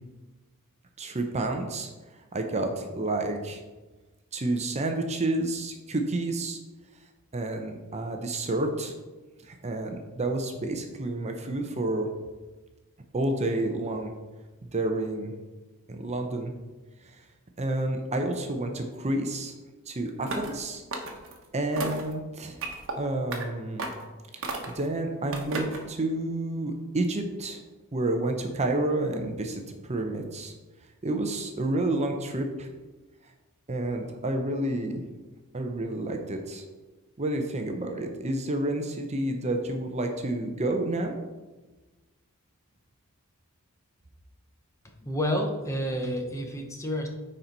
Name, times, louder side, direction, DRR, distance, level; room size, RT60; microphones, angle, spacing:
voice 1, 1.0-1.9 2.3-3.6 4.3-6.6 7.3-8.9 9.4-12.1 13.1-14.1 14.6-15.3 15.9-16.5 17.6-19.5 19.9-20.8 21.5-22.6 23.0-23.8 24.3-24.5 24.7-27.6 27.9-30.5 31.0-32.7 33.7-35.0 35.5-36.6 37.2-41.1, right 2 dB, 30° right, 4 dB, 0.7 m, -29 dB
sound 1, 20.2-20.6 20.9-21.4 21.8-22.1 22.6-22.9 23.3-23.4 23.8-24.1 24.4-24.9 25.3-25.8, right 3 dB, 60° right, 1.1 m, -34 dB
voice 2, 45.0-47.1, equal, 15° left, 3 dB, 0.9 m, -29 dB
9.6 x 4.4 x 4.0 m, 1.2 s
head